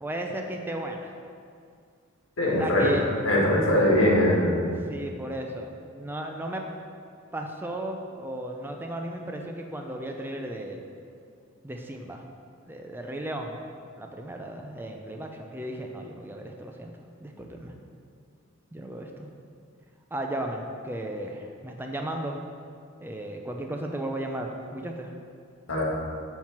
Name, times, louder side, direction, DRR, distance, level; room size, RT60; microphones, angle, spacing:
voice 1, 0.0-1.1 2.5-3.1 3.7-3.8 4.9-6.6 7.3-10.8 11.6-12.2 12.7-13.6 14.0-16.9 17.2-17.7 18.7-19.3 20.1-22.4 23.0-25.1, right 1 dB, 10° right, 2 dB, 0.4 m, -35 dB
voice 2, 2.4-2.9 3.2-4.7 25.7-25.8, left 1 dB, 80° left, -3 dB, 1.8 m, -21 dB
7.5 x 5.8 x 4.4 m, 2.2 s
head